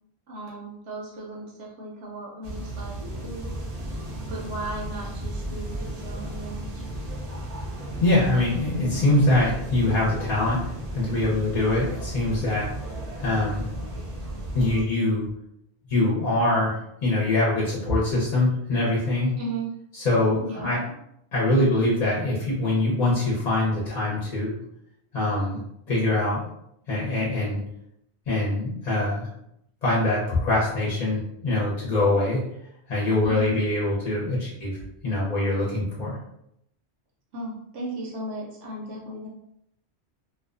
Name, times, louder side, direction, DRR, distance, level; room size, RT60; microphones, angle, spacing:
voice 1, 0.3-6.7 19.4-19.7 20.4-20.7 33.2-33.5 37.3-39.3, right 1 dB, 75° right, -4 dB, 0.9 m, -36 dB
sound 1, 2.4-14.8, right 1 dB, 50° right, 0.5 m, -34 dB
voice 2, 8.0-12.7 13.2-13.7 14.5-15.3 15.9-19.3 19.9-20.9 21.3-24.6 25.1-25.6 25.9-26.4 26.9-27.6 28.3-29.3 29.8-32.4 32.9-36.2, left 2 dB, 45° left, -6 dB, 0.6 m, -24 dB
2.4 x 2.1 x 2.4 m, 0.76 s
omnidirectional pair, 1.2 m